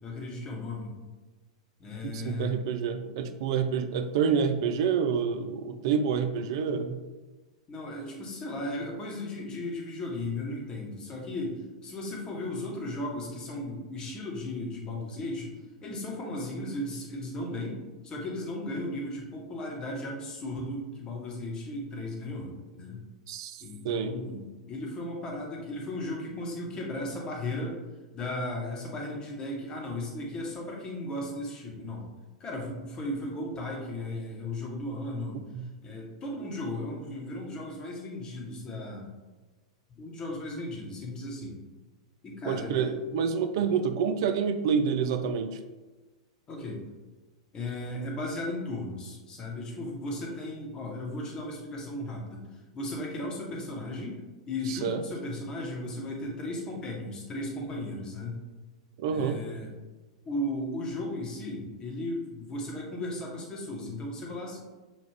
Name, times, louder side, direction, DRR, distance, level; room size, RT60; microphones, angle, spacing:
voice 1, 0.0-1.0 1.8-2.6 7.7-23.0 23.6-27.8 28.1-32.0 32.4-35.4 35.8-39.1 40.0-41.6 42.2-43.0 46.5-46.8 47.5-52.4 52.7-54.2 54.5-58.4 59.1-59.7 60.2-64.6, left 1 dB, 25° left, -1 dB, 1.2 m, -36 dB
voice 2, 2.0-7.0 23.3-24.1 35.5-35.6 42.5-45.6 54.7-55.0 59.0-59.4, right 6 dB, 55° right, 8 dB, 0.4 m, -28 dB
5.9 x 2.4 x 3.3 m, 1.2 s
figure-of-eight pair, 95°, 3 cm